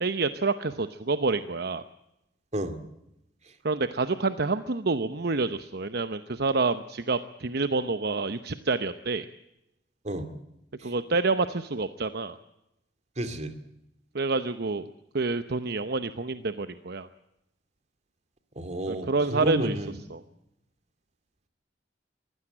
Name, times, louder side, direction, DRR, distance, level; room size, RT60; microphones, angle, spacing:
voice 1, 0.0-1.8 3.6-9.3 10.8-12.4 14.1-14.9 15.1-17.1 18.9-19.7 20.1-20.2, right 3 dB, 60° right, 11 dB, 0.9 m, -28 dB
voice 2, 13.2-13.5 18.6-20.0, right 1 dB, 40° right, 9 dB, 2.4 m, -31 dB
23.0 x 16.5 x 8.8 m, 0.86 s
head